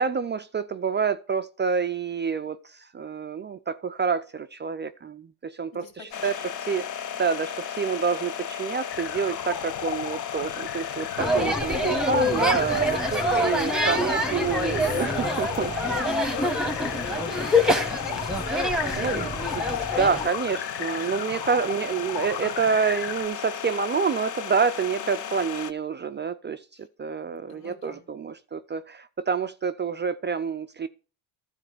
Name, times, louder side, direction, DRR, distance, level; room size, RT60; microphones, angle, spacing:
voice 1, 0.0-2.6 2.9-5.8 6.2-6.3 6.7-6.9 7.2-15.7 19.0-19.6 20.0-26.6 27.0-30.9, right 6 dB, 25° right, 0.4 m, -27 dB
voice 2, 5.7-6.5 13.2-14.0 15.5-20.3 20.7-21.7 24.9-25.3 26.7-26.9 27.2-28.1, left 4 dB, 75° left, 3.8 m, -47 dB
sound 1, 6.1-25.7, left 8 dB, 40° left, 0.8 m, -35 dB
sound 2, 8.9-23.3, left 10 dB, 60° left, 1.1 m, -36 dB
sound 3, 11.2-20.3, left 1 dB, ahead, 1.3 m, -26 dB
12.5 x 4.4 x 6.6 m
cardioid pair, 110°, 48 cm